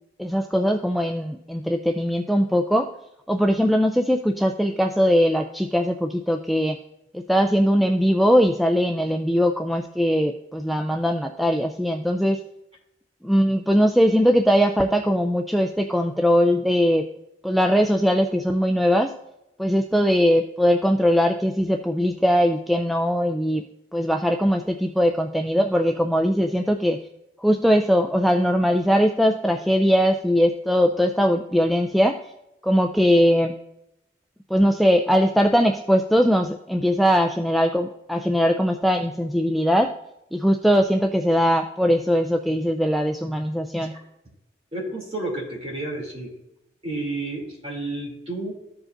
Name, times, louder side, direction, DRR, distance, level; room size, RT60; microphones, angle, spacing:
voice 1, 0.2-2.9 3.3-6.8 7.1-12.4 13.2-17.1 17.4-19.1 19.6-23.6 23.9-27.0 27.4-32.2 32.6-33.5 34.5-39.9 40.3-43.9, equal, ahead, 3 dB, 0.3 m, -20 dB
voice 2, 44.7-46.3 46.8-48.5, right 2 dB, 35° right, -2 dB, 2.8 m, -31 dB
14.5 x 4.9 x 2.6 m, 0.86 s
head